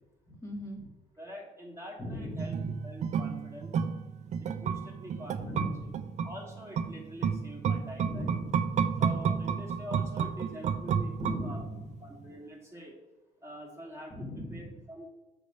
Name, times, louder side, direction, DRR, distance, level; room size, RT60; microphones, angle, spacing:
voice 1, 0.3-0.9 2.0-2.7 5.3-6.1 8.0-8.6 11.2-12.0 14.1-14.8, equal, 15° left, 0 dB, 1.3 m, -39 dB
voice 2, 1.2-2.6 2.8-3.8 4.4-5.9 6.2-8.3 9.0-11.6 12.0-12.9 13.4-15.1, equal, 15° right, -1 dB, 1.3 m, -45 dB
sound 1, 2.4-11.9 12.2-12.3, right 6 dB, 45° right, 0.4 m, -31 dB
6.3 x 3.3 x 5.3 m, 1.1 s
cardioid pair, 110°, 17 cm